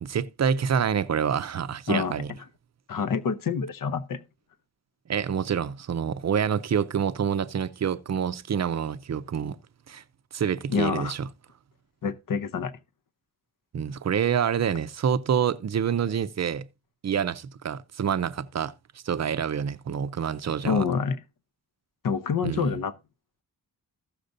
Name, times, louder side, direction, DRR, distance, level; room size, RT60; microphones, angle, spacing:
voice 1, 0.0-2.3 5.1-9.6 9.9-10.0 10.3-11.3 13.7-16.7 17.0-18.7 19.0-20.9 22.4-22.8, right 8 dB, 45° right, 0.5 m, -27 dB
voice 2, 2.9-4.2 10.7-11.1 12.0-12.7 20.6-21.2 22.0-22.9, left 6 dB, 60° left, 0.7 m, -27 dB
15.5 x 6.5 x 2.6 m
wide cardioid pair, 140°, 37 cm